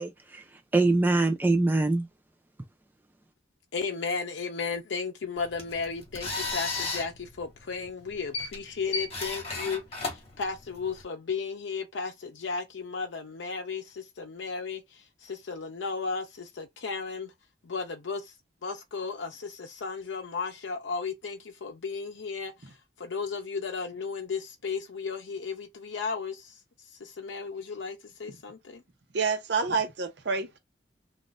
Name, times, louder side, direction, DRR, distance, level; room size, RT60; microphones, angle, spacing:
voice 1, 0.0-2.1, right 2 dB, 10° right, 0.3 m, -24 dB
voice 2, 3.7-17.3 17.6-18.3 18.6-26.6 27.0-28.8, left 5 dB, 80° left, 0.6 m, -35 dB
sound 1, 5.4-11.0, left 3 dB, 35° left, 1.1 m, -35 dB
voice 3, 29.1-30.6, right 5 dB, 65° right, 0.8 m, -28 dB
2.5 x 2.4 x 3.9 m
head